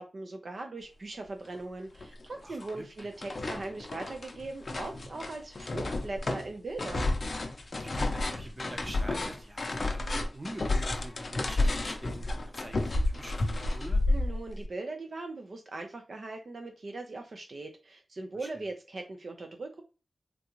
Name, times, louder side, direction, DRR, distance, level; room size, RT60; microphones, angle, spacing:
voice 1, 0.0-7.1 14.1-19.8, right 2 dB, 55° right, 4 dB, 0.5 m, -40 dB
sound 1, 1.5-1.6 2.0-2.7 3.0-14.7, left 2 dB, 50° left, 0.5 m, -31 dB
voice 2, 2.4-3.1 7.8-14.0 18.3-18.7, right 1 dB, 25° right, 4 dB, 0.7 m, -46 dB
3.8 x 2.3 x 2.9 m, 0.35 s
wide cardioid pair, 100°, 0 cm